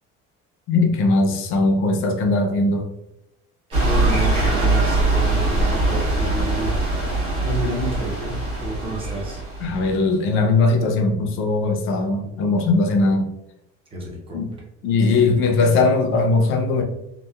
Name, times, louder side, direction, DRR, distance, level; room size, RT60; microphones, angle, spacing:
voice 1, 0.7-2.9 9.6-13.3 14.3-14.5 14.8-16.8, left 3 dB, 45° left, 3 dB, 0.4 m, -19 dB
voice 2, 3.7-6.7 7.4-9.4 13.9-14.5, right 1 dB, 20° right, -1 dB, 0.4 m, -30 dB
sound 1, 3.7-9.9, right 2 dB, 80° right, 1.2 m, -22 dB
2.8 x 2.0 x 2.2 m, 0.85 s
cardioid pair, 155°, 29 cm